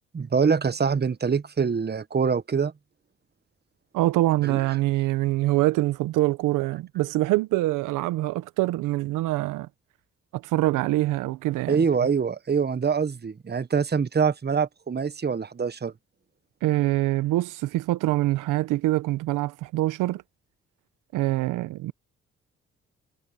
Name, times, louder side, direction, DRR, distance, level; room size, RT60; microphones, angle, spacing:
voice 1, 0.1-2.7 4.4-4.6 11.7-15.9, right 6 dB, 30° right, 1.3 m, -24 dB
voice 2, 3.9-9.7 10.3-11.9 16.6-20.2 21.1-21.9, right 17 dB, 80° right, 1.2 m, -24 dB
hypercardioid pair, 50°, 31 cm